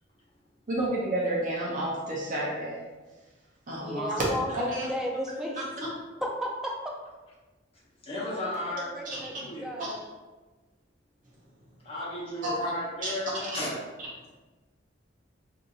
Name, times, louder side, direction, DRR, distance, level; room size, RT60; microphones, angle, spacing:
voice 1, 0.7-2.8 3.7-4.9 9.2-9.3 12.4-12.7 13.0-13.1, right 1 dB, 40° right, -5 dB, 0.7 m, -30 dB
voice 2, 3.8-5.6 6.2-6.9 8.1-10.0, equal, 5° right, -1 dB, 0.4 m, -34 dB
voice 3, 8.0-9.9 11.8-13.8, left 1 dB, 30° left, -7 dB, 0.9 m, -35 dB
2.6 x 2.5 x 4.0 m, 1.2 s
head